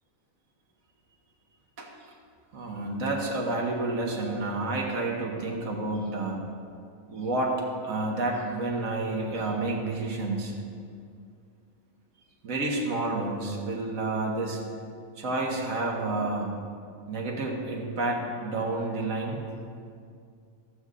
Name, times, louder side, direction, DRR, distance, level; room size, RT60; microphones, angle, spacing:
voice 1, 2.5-6.4 7.1-7.6 7.8-10.5 12.4-14.6 15.2-16.5 17.1-19.4, right 2 dB, 85° right, -1 dB, 1.6 m, -29 dB
14.5 x 7.9 x 2.5 m, 2.3 s
omnidirectional pair, 1.4 m